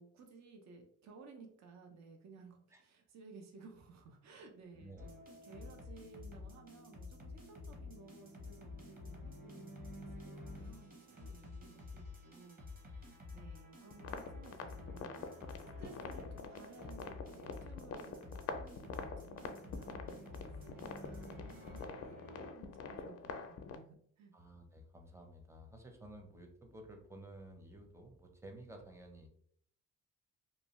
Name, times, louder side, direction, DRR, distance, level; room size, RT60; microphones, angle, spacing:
voice 1, 0.0-24.3, right 4 dB, 65° right, 4 dB, 0.6 m, -58 dB
sound 1, 5.0-22.5, left 2 dB, 30° right, 1.0 m, -50 dB
sound 2, 13.9-23.8, left 5 dB, 55° left, 0.4 m, -46 dB
voice 2, 24.3-29.3, right 1 dB, 10° right, 3 dB, 0.6 m, -53 dB
2.6 x 2.2 x 3.0 m, 0.63 s
cardioid pair, 90°, 30 cm